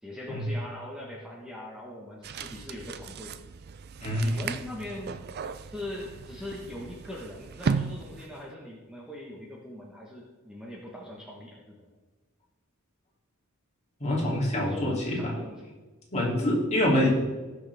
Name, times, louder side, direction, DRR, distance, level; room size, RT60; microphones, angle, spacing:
voice 1, 0.0-3.3 4.2-5.3 5.6-11.9 14.6-15.7, left 1 dB, 5° right, -4 dB, 1.3 m, -41 dB
sound 1, 2.2-8.5, right 5 dB, 45° right, 0.4 m, -36 dB
voice 2, 4.0-4.3 14.0-15.3 16.1-17.1, left 1 dB, 30° left, -5 dB, 3.0 m, -26 dB
18.5 x 6.3 x 3.6 m, 1.3 s
head